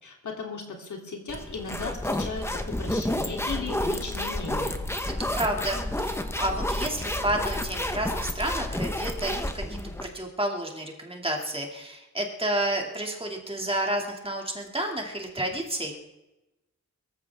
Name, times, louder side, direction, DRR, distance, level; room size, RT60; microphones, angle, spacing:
voice 1, 0.0-4.8, left 4 dB, 80° left, 1 dB, 3.0 m, -36 dB
sound 1, 1.3-10.1, left 1 dB, 10° left, 1.0 m, -30 dB
voice 2, 5.3-16.0, right 1 dB, 20° right, 1 dB, 2.3 m, -30 dB
22.5 x 14.5 x 3.5 m, 0.99 s
wide cardioid pair, 150°, 30 cm